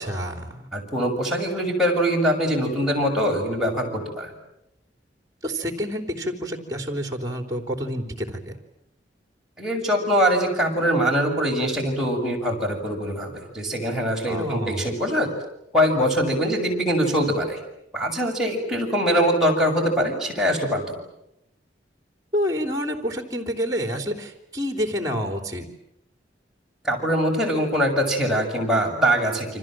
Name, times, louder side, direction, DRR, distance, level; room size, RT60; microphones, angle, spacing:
voice 1, 0.0-0.7 5.4-8.6 14.3-14.9 22.3-25.7, equal, 20° right, 7 dB, 3.6 m, -28 dB
voice 2, 0.7-4.3 9.6-15.3 15.7-17.6 17.9-20.9 26.8-29.6, equal, 5° right, -2 dB, 6.8 m, -23 dB
29.5 x 26.0 x 7.7 m, 0.83 s
head